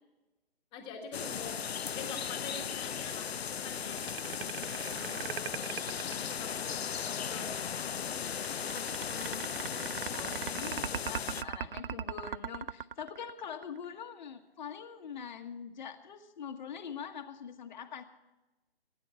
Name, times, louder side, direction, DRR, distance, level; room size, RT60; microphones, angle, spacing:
voice 1, 0.7-3.4 3.6-4.1 4.5-7.6 8.6-9.0, left 5 dB, 15° left, 3 dB, 1.7 m, -46 dB
sound 1, 1.1-11.4, left 7 dB, 75° left, 0.5 m, -37 dB
sound 2, 3.7-6.9 8.3-13.8, right 8 dB, 60° right, 0.4 m, -39 dB
voice 2, 10.1-18.0, left 7 dB, 45° left, 5 dB, 1.3 m, -44 dB
17.0 x 10.0 x 5.7 m, 1.1 s
figure-of-eight pair, 140°, 31 cm